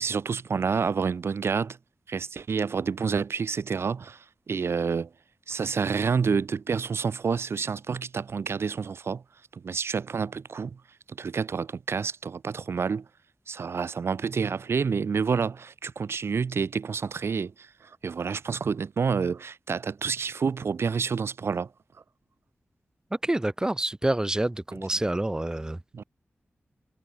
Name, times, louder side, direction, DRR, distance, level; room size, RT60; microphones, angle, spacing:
voice 1, 0.0-1.8 2.1-5.1 5.5-9.2 9.5-10.8 11.1-13.1 13.5-21.7 25.9-26.0, right 5 dB, 85° right, 5.4 m, -28 dB
voice 2, 23.1-25.8, right 1 dB, 15° right, 3.5 m, -27 dB
wide cardioid pair, 110°, 4 cm